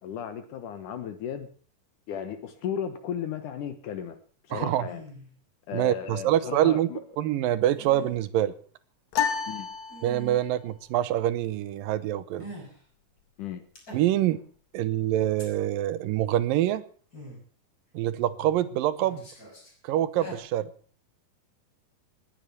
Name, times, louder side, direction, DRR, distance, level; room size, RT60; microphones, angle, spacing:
voice 1, 0.0-1.5 2.1-4.2 4.5-5.0 5.7-7.0 9.5-9.7 13.4-13.6, left 8 dB, 70° left, 10 dB, 2.6 m, -35 dB
voice 2, 4.5-4.9 5.7-6.9 7.2-8.5 10.0-12.5 13.9-14.4 14.7-16.8 17.9-19.2 19.8-20.7, right 12 dB, 90° right, 15 dB, 2.7 m, -25 dB
sound 1, 4.9-5.3 7.6-8.2 9.9-10.5 12.4-12.8 13.8-14.4 15.4-15.5 17.1-17.4 18.1-18.6 19.0-19.7 20.0-20.4, equal, 25° left, 6.2 m, -44 dB
sound 2, 9.1-10.6, left 7 dB, 90° left, 3.3 m, -30 dB
20.0 x 9.2 x 7.0 m, 0.43 s
omnidirectional pair, 3.9 m